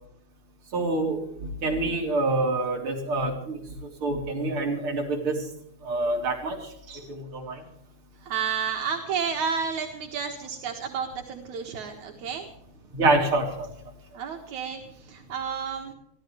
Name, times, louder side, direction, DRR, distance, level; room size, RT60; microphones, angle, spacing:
voice 1, 0.7-3.6 4.0-5.5 5.8-6.6 7.1-7.6 12.9-13.7, right 2 dB, 45° right, 0 dB, 4.3 m, -26 dB
voice 2, 8.2-12.5 14.1-15.9, right 6 dB, 80° right, 2 dB, 2.9 m, -31 dB
23.5 x 15.5 x 3.4 m, 0.73 s
omnidirectional pair, 3.4 m